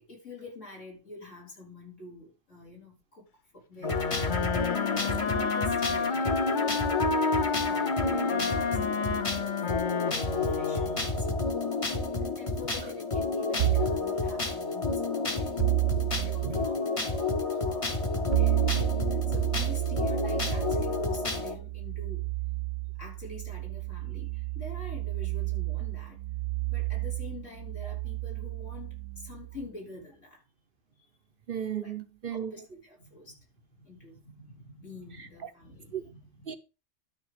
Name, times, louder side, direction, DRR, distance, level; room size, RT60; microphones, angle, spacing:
voice 1, 0.1-3.3 3.5-4.3 4.8-6.8 7.5-11.8 12.1-17.9 18.1-18.6 19.1-22.2 23.0-26.2 26.7-30.4 31.8-31.9 32.3-33.4 33.8-36.6, left 2 dB, 75° left, 4.3 m, -46 dB
Wind instrument woodwind instrument, 3.8-11.2, left 4 dB, 45° left, 0.8 m, -30 dB
sound 1, 3.8-21.5, left 3 dB, 30° left, 1.2 m, -30 dB
sound 2, 13.6-14.0 15.6-16.5 18.3-29.7, right 20 dB, 80° right, 1.0 m, -31 dB
voice 2, 31.5-32.5 35.4-35.5 35.9-36.0 36.5-36.6, right 8 dB, 50° right, 0.9 m, -34 dB
12.5 x 5.2 x 5.0 m
omnidirectional pair, 1.3 m